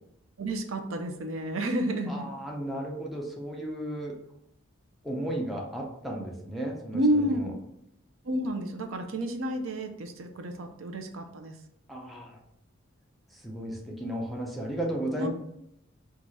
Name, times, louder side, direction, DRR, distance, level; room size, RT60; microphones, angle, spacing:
voice 1, 0.4-2.3 6.9-7.6 8.2-11.6 15.2-15.3, right 1 dB, 75° right, 6 dB, 0.6 m, -30 dB
voice 2, 2.1-4.2 5.0-7.5 11.9-12.4 13.3-15.3, right 1 dB, ahead, -2 dB, 0.6 m, -34 dB
4.6 x 2.4 x 4.0 m, 0.78 s
head